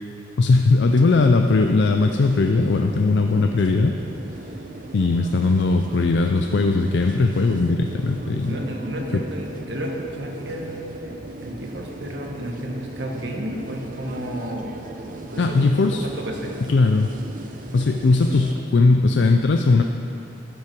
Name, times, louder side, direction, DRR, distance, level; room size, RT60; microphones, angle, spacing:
voice 1, 0.4-3.9 4.9-8.6 9.1-9.2 15.4-16.0 16.7-17.1 17.7-19.8, left 3 dB, 70° left, 4 dB, 0.4 m, -19 dB
sound 1, 0.9-18.5, right 2 dB, 45° right, 0.7 m, -38 dB
voice 2, 8.5-14.7 15.3-16.5, equal, 75° right, 0 dB, 1.4 m, -32 dB
13.0 x 5.8 x 6.1 m, 2.7 s
head